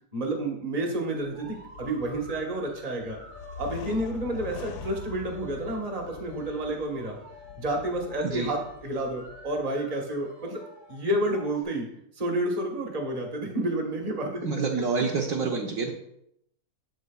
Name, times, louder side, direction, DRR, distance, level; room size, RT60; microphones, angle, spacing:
voice 1, 0.1-3.2 3.6-7.2 7.6-10.6 10.9-11.9 12.2-14.5, right 1 dB, 25° right, 1 dB, 1.1 m, -30 dB
sound 1, 1.2-9.7, left 5 dB, 85° left, 1.2 m, -44 dB
sound 2, 1.3-11.6, left 1 dB, 85° right, 3.2 m, -49 dB
voice 2, 14.4-15.9, right 4 dB, 60° right, 0 dB, 1.1 m, -27 dB
7.8 x 7.7 x 2.3 m, 0.74 s
omnidirectional pair, 1.7 m